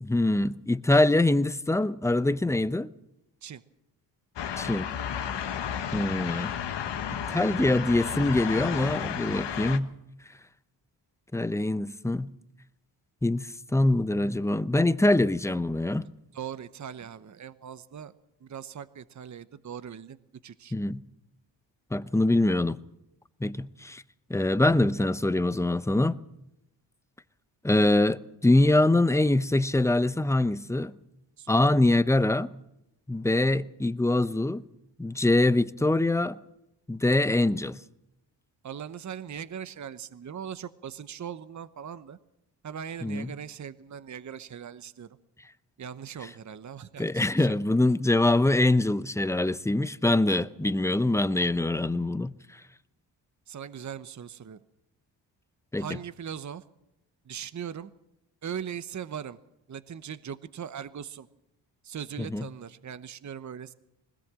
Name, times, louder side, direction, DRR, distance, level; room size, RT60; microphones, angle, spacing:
voice 1, 0.0-2.9 4.6-4.9 5.9-6.5 7.1-9.9 11.3-12.3 13.2-16.1 20.7-21.0 21.9-22.8 23.4-24.0 24.3-26.2 27.6-30.9 31.5-32.5 33.1-34.6 35.0-36.4 36.9-37.8 43.0-43.3 47.0-52.3 55.7-55.9 62.3-62.5, left 2 dB, 5° left, 0.7 m, -24 dB
sound 1, 4.4-9.8, left 8 dB, 65° left, 1.4 m, -32 dB
voice 2, 16.3-18.1 18.4-20.2 20.4-20.7 31.4-31.6 38.6-42.2 42.6-45.1 45.8-47.6 53.5-54.6 55.8-56.6 57.2-57.9 58.4-59.4 59.7-61.3 61.8-63.7, right 8 dB, 40° right, 0.9 m, -40 dB
20.5 x 17.5 x 7.6 m
cardioid pair, 65°, 45 cm